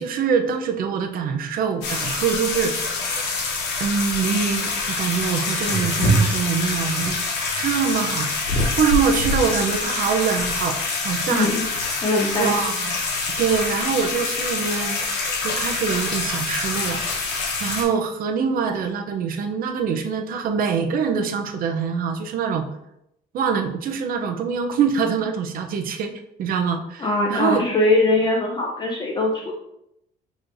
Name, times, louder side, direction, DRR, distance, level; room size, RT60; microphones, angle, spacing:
voice 1, 0.0-3.1 3.8-7.2 7.6-8.3 8.8-11.5 12.4-12.9 13.4-15.1 15.4-22.7 23.3-26.1 26.4-27.6, right 6 dB, 60° right, 4 dB, 0.6 m, -24 dB
sound 1, 1.8-17.8, left 2 dB, 90° left, 0.9 m, -25 dB
voice 2, 11.3-11.6 12.0-12.5 27.0-29.5, left 2 dB, 25° left, -1 dB, 0.6 m, -21 dB
6.2 x 3.1 x 2.6 m, 0.81 s
cardioid pair, 110°, 17 cm